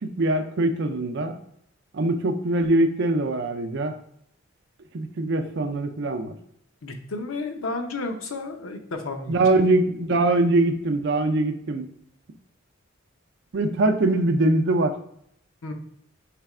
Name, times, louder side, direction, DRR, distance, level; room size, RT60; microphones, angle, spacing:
voice 1, 0.0-1.4 1.9-4.0 4.9-6.4 9.3-11.9 13.5-15.0, right 2 dB, 60° right, 7 dB, 0.5 m, -22 dB
voice 2, 6.8-9.3 15.6-15.7, left 3 dB, 85° left, 5 dB, 0.7 m, -32 dB
3.4 x 3.2 x 4.7 m, 0.71 s
head